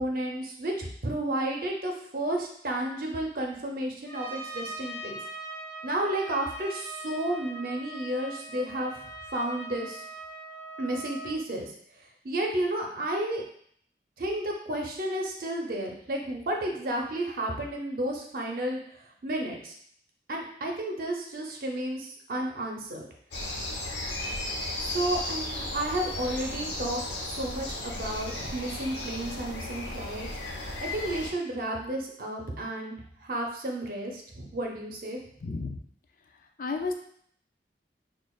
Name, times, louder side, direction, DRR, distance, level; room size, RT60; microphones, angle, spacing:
voice 1, 0.0-5.2 5.8-9.1 9.3-10.0 10.8-11.7 12.2-13.4 14.2-18.8 19.2-19.7 20.3-23.1 24.8-30.3 30.8-35.2, right 1 dB, 50° right, 1 dB, 0.7 m, -32 dB
Trumpet, 4.1-11.4, right 2 dB, 15° left, 1.1 m, -41 dB
sound 1, 23.3-31.3, left 1 dB, 85° left, 0.9 m, -35 dB
voice 2, 35.4-35.8 36.2-36.9, left 3 dB, 50° left, 4 dB, 0.4 m, -33 dB
6.1 x 2.4 x 2.3 m, 0.64 s
head